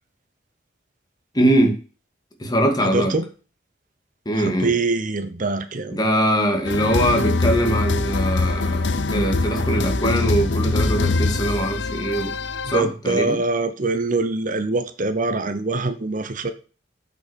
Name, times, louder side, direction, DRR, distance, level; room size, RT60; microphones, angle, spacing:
voice 1, 1.3-1.8 2.4-3.1 4.3-4.7 5.9-12.3 12.7-13.4, right 1 dB, 25° left, 2.2 m, -22 dB
voice 2, 2.8-3.2 4.4-6.0 12.7-16.5, right 3 dB, 45° right, 0.9 m, -24 dB
sound 1, 6.7-12.8, left 3 dB, 85° left, 0.8 m, -23 dB
8.8 x 6.1 x 6.4 m
head